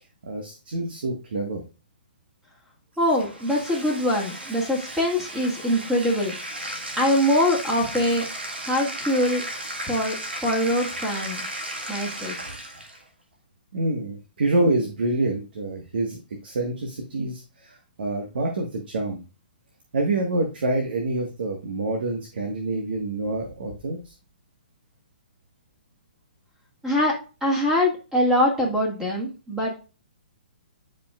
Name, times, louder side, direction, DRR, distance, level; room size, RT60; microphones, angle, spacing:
voice 1, 0.2-1.6 13.7-19.2 19.9-24.1, right 2 dB, 70° right, 2 dB, 1.5 m, -27 dB
voice 2, 3.0-6.3 7.0-8.3 8.6-9.4 9.9-10.2 10.4-11.4 11.9-12.4 26.8-27.1 27.4-29.8, left 1 dB, 5° right, -3 dB, 1.9 m, -23 dB
Bathtub (filling or washing), 3.0-13.0, right 1 dB, 85° right, 1.7 m, -35 dB
10.0 x 5.2 x 2.4 m, 0.33 s
hypercardioid pair, 130°, 6 cm